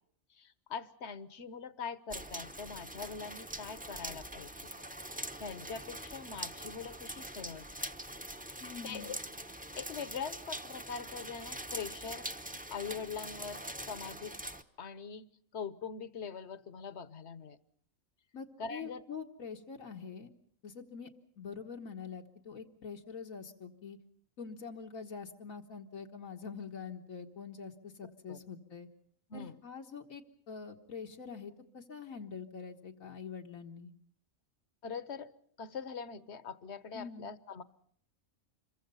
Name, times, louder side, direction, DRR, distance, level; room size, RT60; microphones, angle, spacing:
voice 1, 0.3-4.7 5.1-7.6 8.6-9.2 9.7-12.3 12.7-14.4 14.8-17.6 18.6-19.0 28.3-28.4 29.3-29.5 34.8-35.3 35.6-37.6, left 6 dB, 55° left, 15 dB, 1.3 m, -43 dB
sound 1, 2.1-14.6, right 1 dB, 5° right, 0.9 m, -43 dB
voice 2, 8.6-9.2 18.3-20.3 20.6-21.1 21.4-24.0 24.4-28.9 29.3-33.9 36.9-37.3, left 6 dB, 85° left, 1 dB, 1.9 m, -45 dB
26.5 x 23.0 x 5.5 m, 0.64 s
omnidirectional pair, 1.4 m